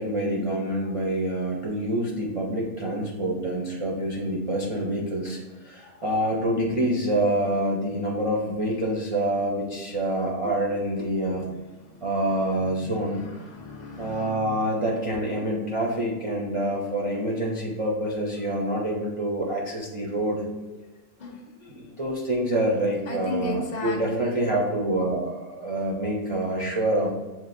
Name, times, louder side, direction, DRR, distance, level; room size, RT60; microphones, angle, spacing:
voice 1, 0.0-11.5 12.0-13.2 14.0-20.4 21.7-27.1, right 1 dB, 55° right, -4 dB, 0.3 m, -26 dB
voice 2, 11.4-12.1 12.6-14.8 21.2-21.9 23.1-24.4, left 3 dB, 60° left, 1 dB, 0.4 m, -37 dB
7.2 x 2.5 x 2.5 m, 1.1 s
omnidirectional pair, 1.4 m